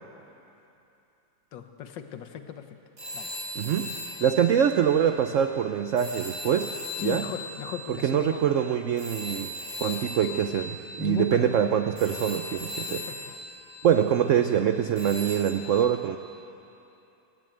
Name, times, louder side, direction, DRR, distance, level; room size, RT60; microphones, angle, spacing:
voice 1, 1.5-2.7 3.1-3.3 7.0-8.6 11.0-11.6 12.9-13.2, left 9 dB, 80° left, 7 dB, 1.8 m, -37 dB
sound 1, 3.0-5.4 6.0-14.4 15.0-15.4, left 1 dB, 80° right, 6.2 m, -38 dB
voice 2, 3.5-3.9 4.2-6.7 7.0-7.2 8.0-9.5 9.8-13.0 13.8-16.2, right 9 dB, 65° right, 7 dB, 0.8 m, -24 dB
18.0 x 16.0 x 9.0 m, 2.7 s
omnidirectional pair, 2.0 m